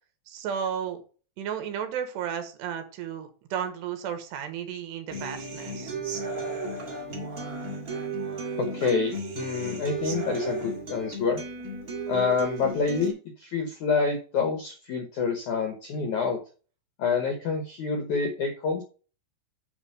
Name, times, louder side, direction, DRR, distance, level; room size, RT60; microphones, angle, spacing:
voice 1, 0.3-1.0 1.4-5.9, right 8 dB, 75° right, 7 dB, 3.2 m, -33 dB
Human voice / Acoustic guitar, 5.1-13.1, right 3 dB, 35° right, 1.4 m, -34 dB
voice 2, 8.6-11.4 12.1-16.4 17.0-18.8, left 5 dB, 75° left, 4 dB, 1.8 m, -27 dB
9.8 x 3.7 x 6.7 m, 0.37 s
omnidirectional pair, 5.1 m